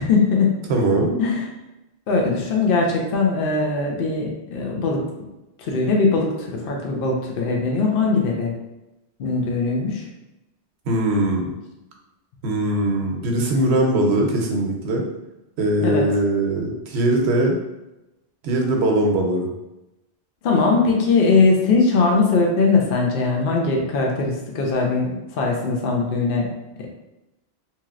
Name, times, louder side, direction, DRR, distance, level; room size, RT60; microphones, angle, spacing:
voice 1, 0.0-0.5 1.2-1.5 2.1-5.0 5.6-8.5 9.2-10.0 15.8-16.0 20.4-25.1 25.4-26.5, left 4 dB, 60° left, 0 dB, 0.8 m, -20 dB
voice 2, 0.7-1.2 10.9-11.5 12.4-15.0 15.6-17.6 18.4-19.5, right 1 dB, 75° right, 1 dB, 0.9 m, -20 dB
2.9 x 2.8 x 2.4 m, 0.96 s
omnidirectional pair, 1.1 m